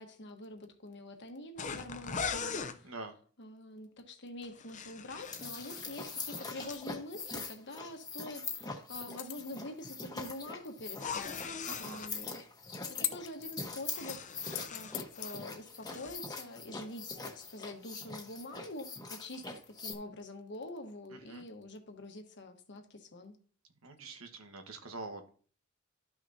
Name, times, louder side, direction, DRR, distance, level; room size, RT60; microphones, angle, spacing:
voice 1, 0.0-2.9 3.4-12.4 12.9-23.4, left 1 dB, 60° left, 1.3 m, -46 dB
sound 1, 1.6-2.8 4.4-6.8 10.9-12.1 13.6-15.4 15.7-16.2, left 5 dB, 35° left, 0.6 m, -41 dB
sound 2, 5.2-19.9, left 3 dB, 20° left, 1.2 m, -43 dB
sound 3, 9.2-9.6 12.2-12.3 12.7-13.6 14.0-15.3, left 14 dB, 80° left, 0.6 m, -40 dB
voice 2, 11.6-12.0 21.3-21.4 23.8-25.3, right 3 dB, 85° right, 1.3 m, -45 dB
12.5 x 6.0 x 2.7 m
head